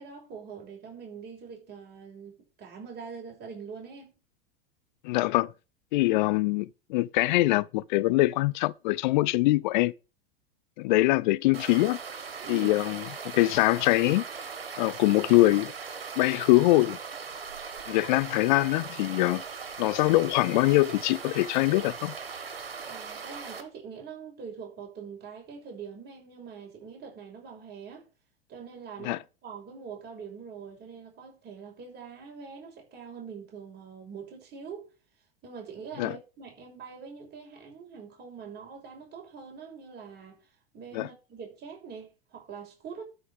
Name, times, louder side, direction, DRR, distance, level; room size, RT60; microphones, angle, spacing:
voice 1, 0.0-4.2 12.4-12.9 22.9-28.1 28.5-34.9 35.4-40.4 40.7-43.0, right 6 dB, 35° right, 6.4 m, -44 dB
voice 2, 5.0-5.5 5.9-9.9 10.8-12.0 12.5-14.2 14.8-15.7 16.2-17.0 17.9-19.4 19.8-22.1 29.0-29.2 36.0-36.2 40.9-41.1, left 19 dB, 50° left, 0.6 m, -23 dB
sound 1, 11.5-23.6, right 5 dB, 75° right, 2.2 m, -39 dB
12.5 x 5.6 x 6.7 m
figure-of-eight pair, 90°, 30 cm